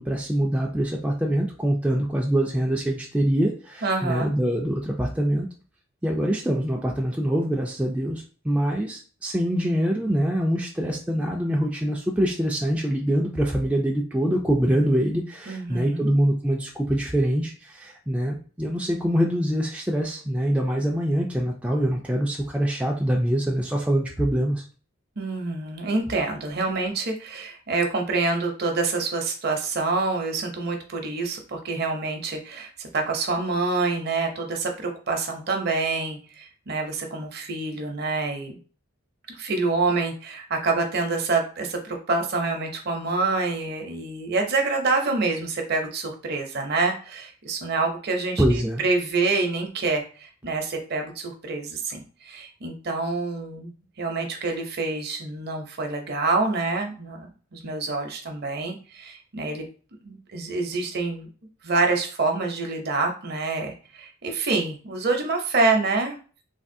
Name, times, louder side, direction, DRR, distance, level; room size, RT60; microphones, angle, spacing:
voice 1, 0.0-5.5 6.0-24.6 48.4-48.8, equal, 5° right, -2 dB, 0.3 m, -24 dB
voice 2, 3.8-4.3 15.5-16.1 25.2-38.6 39.3-59.6 60.0-61.3 61.6-66.2, right 3 dB, 50° right, 3 dB, 0.6 m, -27 dB
3.4 x 2.3 x 2.6 m, 0.38 s
head